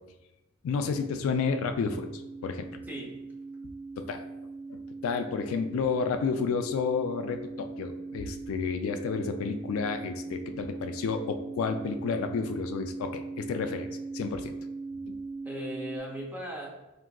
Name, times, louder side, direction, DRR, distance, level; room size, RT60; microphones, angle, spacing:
voice 1, 0.6-2.7 4.0-4.2 4.7-13.9 14.1-14.5 15.1-15.2, left 5 dB, 80° left, 7 dB, 0.3 m, -31 dB
sound 1, 0.8-16.0, right 3 dB, 70° right, 0.8 m, -40 dB
voice 2, 2.9-3.2 15.4-16.8, equal, 10° right, -2 dB, 0.6 m, -38 dB
3.7 x 2.6 x 2.3 m, 0.98 s
head